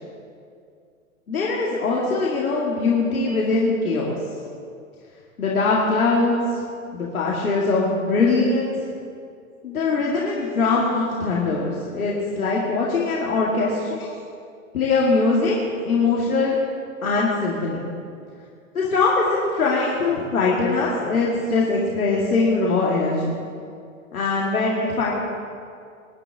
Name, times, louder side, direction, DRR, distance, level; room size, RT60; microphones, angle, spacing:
voice 1, 1.3-4.2 5.4-6.6 6.9-8.8 9.6-14.1 14.7-15.6 15.8-16.6 17.0-17.9 18.7-23.3 24.1-25.1, left 3 dB, 90° left, -5 dB, 2.3 m, -22 dB
23.0 x 9.9 x 3.6 m, 2.4 s
hypercardioid pair, 115°, 42 cm